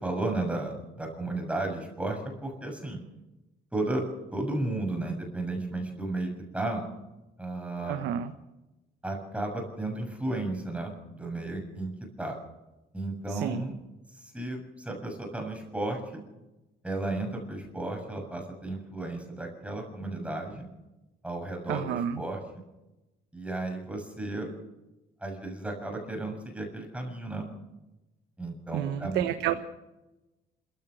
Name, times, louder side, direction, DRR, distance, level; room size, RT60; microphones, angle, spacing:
voice 1, 0.0-3.0 3.7-4.0 4.3-6.8 7.4-8.0 9.0-11.9 12.2-12.3 12.9-13.8 14.1-16.2 16.8-20.7 21.2-22.4 23.3-24.5 25.2-27.4 28.4-29.6, right 2 dB, 5° right, 2 dB, 6.9 m, -34 dB
voice 2, 7.8-8.3 13.3-13.6 21.7-22.2 28.7-29.5, right 10 dB, 80° right, 8 dB, 1.3 m, -30 dB
26.5 x 15.0 x 6.5 m, 1.0 s
cardioid pair, 110°, 17 cm